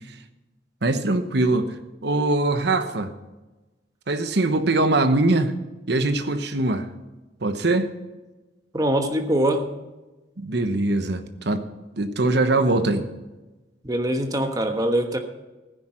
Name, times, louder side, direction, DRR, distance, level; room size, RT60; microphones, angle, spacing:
voice 1, 0.8-1.7 2.0-3.1 4.1-5.5 5.9-6.9 7.4-7.9 10.4-11.7 12.0-13.1, right 2 dB, 65° right, 1.1 m, -22 dB
voice 2, 8.7-9.7 13.8-15.2, right 1 dB, 20° right, 1.2 m, -23 dB
15.0 x 10.0 x 4.4 m
head